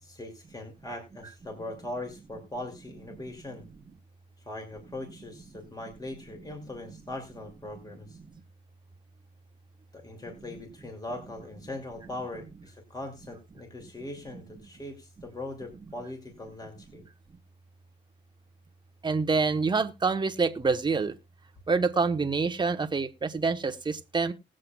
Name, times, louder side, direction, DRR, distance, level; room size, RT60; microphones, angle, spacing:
voice 1, 0.0-3.7 4.5-8.2 9.9-17.1, left 1 dB, 20° left, 2.5 m, -40 dB
voice 2, 19.0-21.1 21.7-24.3, right 4 dB, 20° right, 1.1 m, -26 dB
20.0 x 7.6 x 2.3 m
cardioid pair, 90°, 20 cm